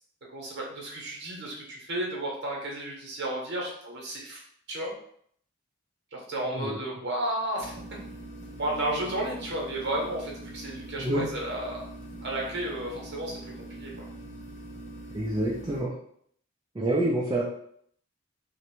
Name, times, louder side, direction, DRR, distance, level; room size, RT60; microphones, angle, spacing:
voice 1, 0.3-4.4 4.7-4.9 6.1-7.7 8.6-11.8 12.2-13.4 13.7-14.0, right 1 dB, 55° right, -2 dB, 0.8 m, -32 dB
sound 1, 7.6-15.8, right 1 dB, 35° left, 0.6 m, -43 dB
voice 2, 11.0-11.3 15.1-15.9 16.8-17.4, right 1 dB, 20° right, -4 dB, 0.3 m, -27 dB
2.5 x 2.1 x 2.9 m, 0.65 s
head